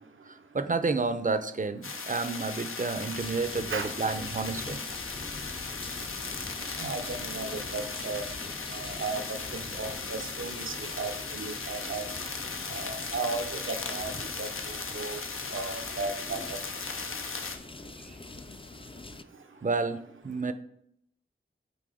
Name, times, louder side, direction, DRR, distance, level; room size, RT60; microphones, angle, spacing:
voice 1, 0.3-4.8 19.6-20.0 20.2-20.5, right 4 dB, 40° right, 10 dB, 0.6 m, -30 dB
sound 1, 1.8-17.6, left 4 dB, 80° left, 0.7 m, -37 dB
sound 2, 3.1-19.2, left 3 dB, 25° left, 0.4 m, -44 dB
voice 2, 6.8-8.2 8.7-12.0 12.7-14.1 14.4-14.5 14.9-15.2 15.5-16.4, right 3 dB, 70° right, 8 dB, 0.7 m, -35 dB
6.0 x 4.2 x 4.9 m, 0.71 s
wide cardioid pair, 45°, 21 cm